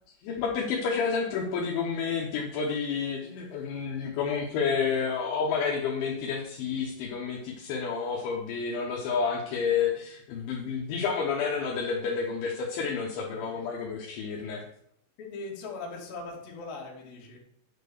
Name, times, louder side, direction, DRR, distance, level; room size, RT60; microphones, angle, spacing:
voice 1, 0.2-14.6, left 5 dB, 75° left, -2 dB, 3.2 m, -30 dB
voice 2, 13.3-13.7 15.2-17.4, left 3 dB, 55° left, -2 dB, 3.1 m, -40 dB
9.4 x 4.5 x 6.7 m, 0.69 s
omnidirectional pair, 5.9 m